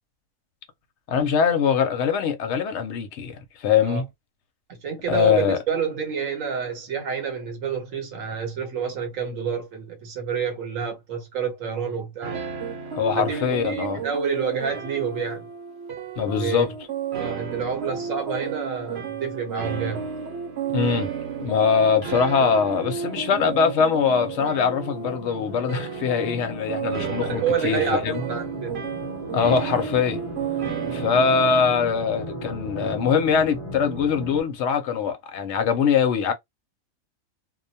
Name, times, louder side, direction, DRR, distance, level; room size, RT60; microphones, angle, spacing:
voice 1, 1.1-4.1 5.1-5.6 12.9-14.0 16.2-16.7 20.7-21.1 21.4-28.2 29.3-30.2 30.9-36.3, left 6 dB, 65° left, 0.8 m, -22 dB
voice 2, 4.7-12.4 13.2-15.5 16.2-16.7 17.1-20.1 27.2-28.8, right 6 dB, 75° right, 1.2 m, -28 dB
sound 1, 12.2-31.8, right 7 dB, 55° right, 0.9 m, -32 dB
sound 2, 20.7-34.4, equal, 40° left, 0.6 m, -37 dB
2.2 x 2.2 x 2.6 m
omnidirectional pair, 1.4 m